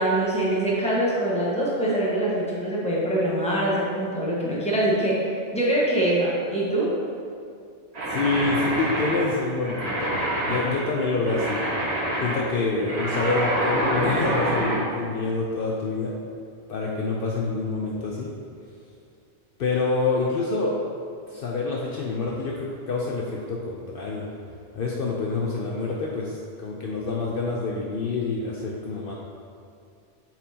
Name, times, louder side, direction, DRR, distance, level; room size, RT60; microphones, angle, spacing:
voice 1, 0.0-6.9, right 1 dB, 5° left, -7 dB, 1.2 m, -24 dB
sound 1, 7.9-14.8, right 1 dB, 75° right, 1.5 m, -27 dB
voice 2, 8.1-10.2 10.5-11.6 12.2-16.1 16.7-18.3 19.6-20.8 21.3-29.1, left 3 dB, 60° left, -3 dB, 0.7 m, -27 dB
7.9 x 4.3 x 2.8 m, 2.4 s
omnidirectional pair, 1.1 m